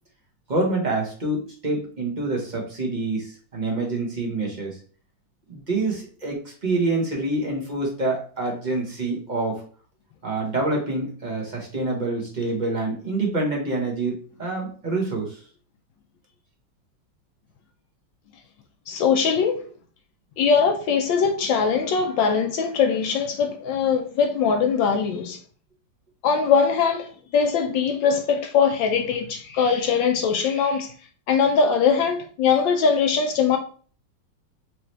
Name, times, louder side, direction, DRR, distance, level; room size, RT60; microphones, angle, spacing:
voice 1, 0.5-4.8 5.5-9.6 10.2-15.4, right 2 dB, 35° right, 0.8 m, -26 dB
voice 2, 18.9-19.6 20.4-25.4 26.2-30.9 31.3-33.6, left 6 dB, 75° left, 1.2 m, -21 dB
4.7 x 3.0 x 3.1 m
omnidirectional pair, 2.3 m